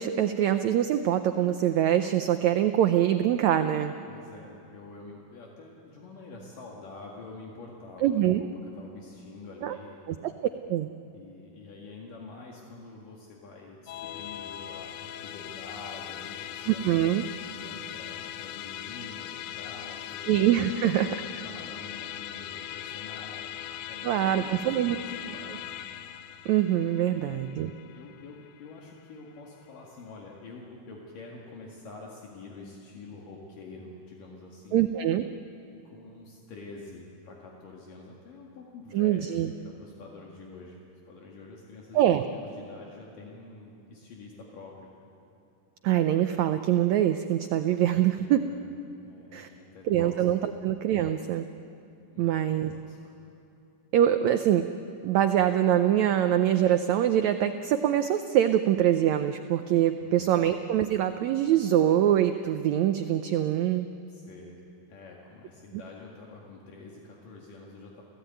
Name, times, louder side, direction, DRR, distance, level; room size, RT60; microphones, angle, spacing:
voice 1, 0.0-3.9 8.0-8.4 9.6-9.8 10.1-10.3 10.7-10.9 16.7-17.2 20.3-21.1 24.0-25.0 26.4-27.7 34.7-35.2 38.9-39.5 41.9-42.2 45.8-48.4 49.3-49.5 49.9-51.4 52.2-52.7 53.9-54.7 55.0-63.9, right 11 dB, 85° right, 8 dB, 1.6 m, -24 dB
voice 2, 4.1-8.1 8.3-10.0 11.1-16.9 17.5-20.3 20.6-20.9 21.4-23.5 23.9-25.9 27.1-34.8 35.9-44.9 48.2-48.7 49.0-50.1 50.4-50.6 52.1-53.2 60.0-60.5 64.1-68.0, left 3 dB, 70° left, -2 dB, 3.5 m, -47 dB
Musical instrument, 13.9-29.4, left 11 dB, 85° left, 2.6 m, -40 dB
29.5 x 16.5 x 9.1 m, 2.7 s
omnidirectional pair, 4.1 m